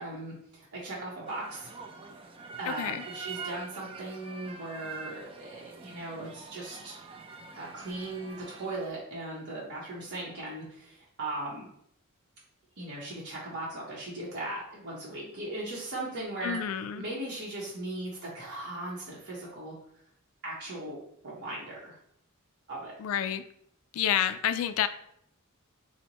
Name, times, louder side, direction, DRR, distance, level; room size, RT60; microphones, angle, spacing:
voice 1, 0.0-1.7 2.4-7.0 7.6-11.7 12.8-16.6 17.0-19.7 20.4-21.0 21.2-22.0 22.7-22.9, right 2 dB, 55° right, -7 dB, 1.0 m, -38 dB
sound 1, 1.3-8.9, right 4 dB, 25° right, 0.4 m, -45 dB
voice 2, 2.7-3.0 16.4-17.0 23.0-23.4 23.9-24.9, left 10 dB, 70° left, 13 dB, 0.3 m, -29 dB
4.3 x 2.1 x 4.1 m, 0.71 s
head